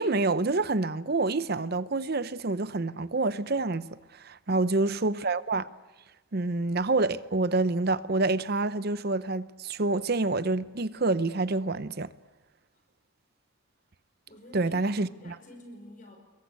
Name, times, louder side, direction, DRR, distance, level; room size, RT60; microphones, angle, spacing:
voice 1, 0.0-3.9 4.1-5.7 6.3-12.1 14.5-15.4, right 3 dB, 50° right, 0.8 m, -27 dB
voice 2, 14.3-16.2, left 1 dB, 40° left, 5.0 m, -49 dB
26.5 x 22.5 x 8.4 m
head